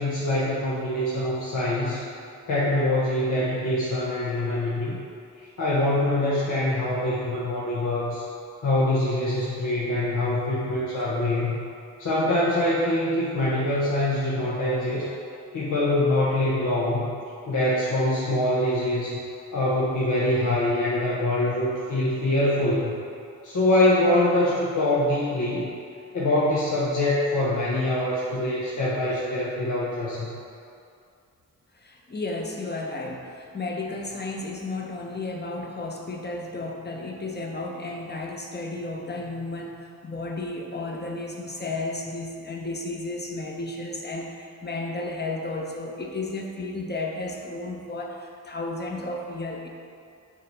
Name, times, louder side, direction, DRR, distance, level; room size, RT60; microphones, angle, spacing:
voice 1, 0.0-2.0 2.5-5.0 5.6-8.2 8.6-11.6 12.0-15.1 15.5-17.1 17.5-19.2 19.5-22.9 23.4-25.7 26.1-30.3, left 1 dB, 65° left, -8 dB, 1.2 m, -24 dB
voice 2, 31.8-49.7, left 2 dB, 30° left, 0 dB, 1.1 m, -33 dB
7.5 x 3.5 x 5.4 m, 2.4 s
cardioid pair, 60°, 33 cm